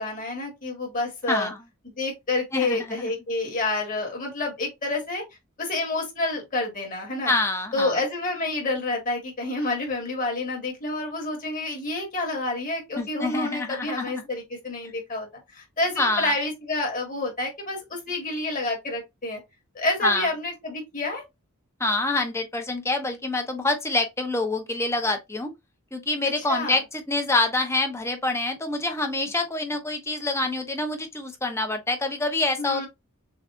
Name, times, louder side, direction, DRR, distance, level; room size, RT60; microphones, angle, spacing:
voice 1, 0.0-1.5 2.0-5.2 5.6-7.3 7.7-19.4 19.7-21.2 26.5-26.8 32.6-32.9, left 2 dB, 35° left, 1.9 m, -28 dB
voice 2, 1.3-1.6 2.5-3.1 7.3-8.0 13.0-14.1 16.0-16.3 20.0-20.3 21.8-25.5 25.9-32.9, left 2 dB, 10° left, 0.8 m, -26 dB
6.4 x 2.3 x 2.6 m
head